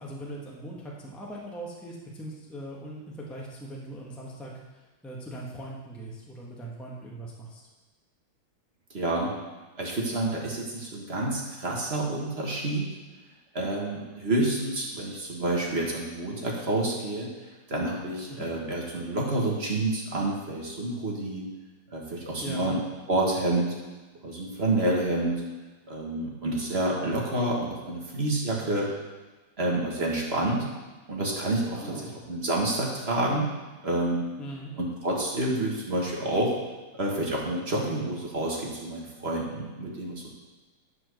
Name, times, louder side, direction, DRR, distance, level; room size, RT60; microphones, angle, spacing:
voice 1, 0.0-7.6 18.3-18.5 22.4-22.7 31.7-32.1 34.4-34.7, right 1 dB, ahead, -3 dB, 1.2 m, -40 dB
voice 2, 8.9-9.3 9.8-12.8 13.5-17.3 17.7-21.4 21.9-22.8 23.1-23.7 24.2-25.4 25.9-28.9 29.6-30.7 31.1-31.9 32.3-33.5 33.8-34.2 34.8-36.5 36.9-40.3, right 1 dB, 35° right, -3 dB, 1.6 m, -28 dB
10.5 x 4.9 x 6.5 m, 1.2 s
omnidirectional pair, 2.2 m